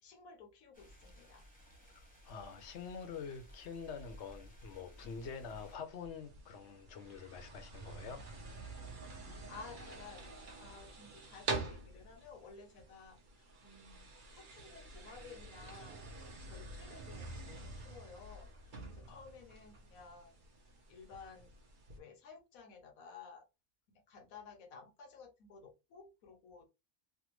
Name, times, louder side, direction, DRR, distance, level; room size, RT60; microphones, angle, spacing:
voice 1, 0.0-1.5 9.2-10.3 10.6-20.4 20.9-21.5 22.0-23.5 23.9-26.6, left 5 dB, 85° left, 1.3 m, -55 dB
sound 1, 0.7-5.8, equal, 5° left, 0.9 m, -57 dB
voice 2, 1.9-8.2 19.1-19.2, left 6 dB, 65° left, 0.9 m, -46 dB
sound 2, 5.0-22.0, right 3 dB, 45° right, 0.8 m, -47 dB
3.4 x 2.2 x 3.0 m
omnidirectional pair, 1.4 m